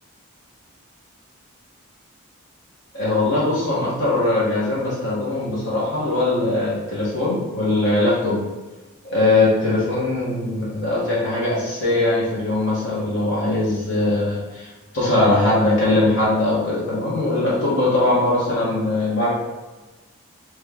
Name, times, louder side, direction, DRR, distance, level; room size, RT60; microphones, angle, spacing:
voice 1, 2.9-8.4 9.0-14.7 14.9-19.3, left 2 dB, 60° left, -7 dB, 1.0 m, -21 dB
3.1 x 2.2 x 3.4 m, 1.2 s
head